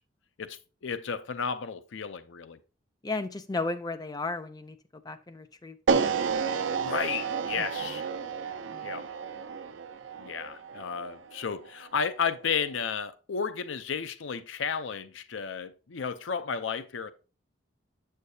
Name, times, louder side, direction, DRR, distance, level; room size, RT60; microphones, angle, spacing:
voice 1, 0.4-2.6 6.8-8.1 8.8-9.0 10.2-17.1, left 6 dB, 70° left, 0.5 m, -33 dB
voice 2, 3.0-4.8 5.0-6.1 7.6-8.0 8.7-8.9, left 3 dB, 20° left, 0.4 m, -35 dB
sound 1, 5.9-12.0, right 5 dB, 75° right, 0.5 m, -31 dB
7.7 x 6.6 x 2.7 m
head